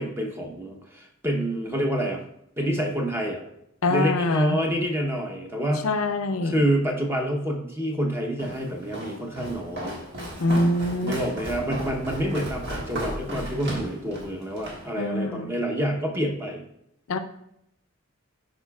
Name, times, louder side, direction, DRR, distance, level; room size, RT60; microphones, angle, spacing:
voice 1, 0.0-2.2 2.6-3.4 3.9-5.9 6.4-10.0 11.0-16.6, equal, 10° right, 1 dB, 0.8 m, -27 dB
voice 2, 3.8-4.6 5.8-6.6 10.4-11.2 15.0-15.5 17.1-17.2, left 2 dB, 70° left, 9 dB, 0.5 m, -24 dB
Walk footsteps, 8.4-14.9, equal, 50° right, 1.7 m, -34 dB
11.5 x 5.0 x 2.3 m, 0.77 s
head